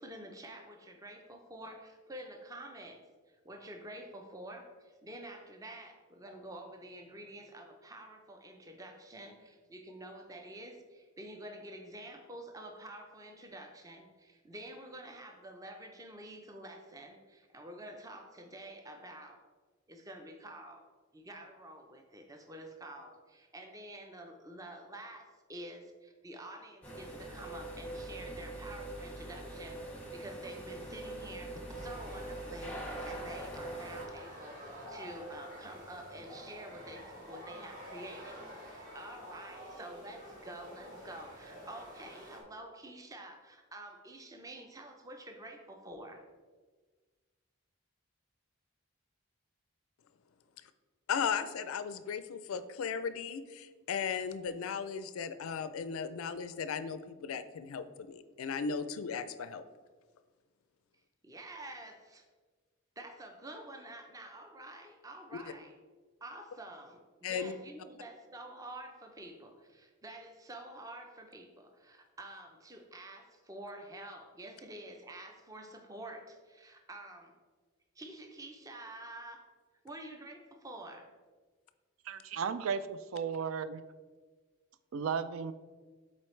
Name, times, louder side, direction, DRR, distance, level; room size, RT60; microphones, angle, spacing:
voice 1, 0.0-3.0 3.4-19.4 19.9-20.9 21.1-46.2 61.2-62.2 63.0-65.7 66.2-77.4 78.0-79.5 79.8-81.1, right 1 dB, 15° right, 4 dB, 0.5 m, -48 dB
sound 1, 26.8-34.1, right 1 dB, 5° left, 0.9 m, -43 dB
sound 2, 31.7-42.4, equal, 40° right, 1.3 m, -49 dB
voice 2, 51.1-59.6 65.3-65.4 67.2-67.5, left 6 dB, 80° left, 12 dB, 0.4 m, -36 dB
voice 3, 82.1-83.8 84.9-85.5, right 6 dB, 70° right, 12 dB, 0.4 m, -35 dB
7.6 x 4.2 x 3.2 m, 1.4 s
head